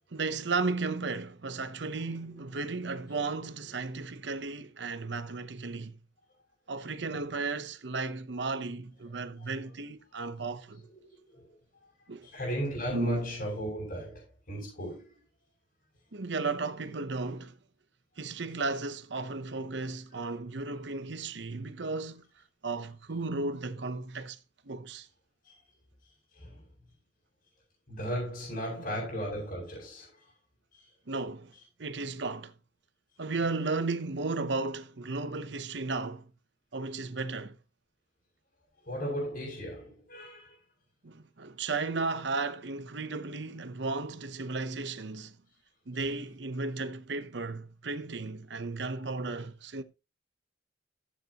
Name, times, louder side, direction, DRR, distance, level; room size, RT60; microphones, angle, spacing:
voice 1, 0.1-6.0 6.7-10.8 12.1-12.3 12.9-13.3 16.1-17.6 18.2-22.2 22.6-24.4 24.7-25.1 28.7-29.0 31.1-31.5 31.8-32.5 33.2-36.3 36.7-37.6 41.0-45.4 45.9-49.8, right 3 dB, 70° right, 0.9 m, -34 dB
voice 2, 10.9-11.4 11.8-11.9 12.2-15.2 25.4-25.5 26.3-26.6 27.9-30.3 30.7-30.9 38.9-40.6 45.9-46.1, equal, 50° left, 7.3 m, -36 dB
15.0 x 9.4 x 3.0 m
head